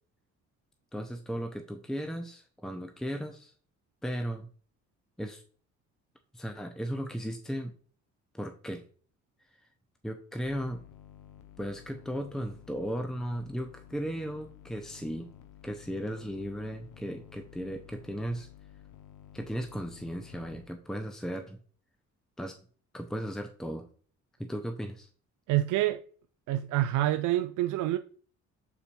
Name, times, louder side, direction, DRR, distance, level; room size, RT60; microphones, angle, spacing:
voice 1, 0.9-3.5 4.0-4.5 5.2-5.4 6.3-7.7 8.3-8.8 10.0-10.8 11.6-15.3 15.6-18.5 19.3-21.6 22.4-22.6 22.9-23.9 24.4-25.1, equal, ahead, 0.8 m, -36 dB
sound 1, 10.4-20.7, left 10 dB, 80° left, 0.9 m, -53 dB
voice 2, 25.5-26.0 26.5-28.0, right 14 dB, 85° right, 0.5 m, -27 dB
7.0 x 4.1 x 4.4 m
cardioid pair, 90°, 30 cm